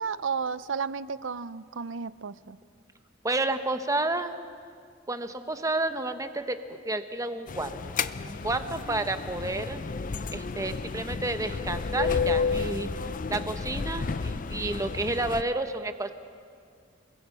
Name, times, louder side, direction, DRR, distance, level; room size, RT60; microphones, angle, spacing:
voice 1, 0.0-2.6, right 5 dB, 70° right, 17 dB, 0.6 m, -33 dB
voice 2, 3.2-4.3 5.1-8.0 8.3-9.8 10.3-12.9 13.3-16.1, right 2 dB, 15° right, 9 dB, 1.0 m, -30 dB
sound 1, 7.5-15.4, left 5 dB, 45° left, 0.5 m, -31 dB
29.0 x 21.5 x 5.5 m, 2.2 s
head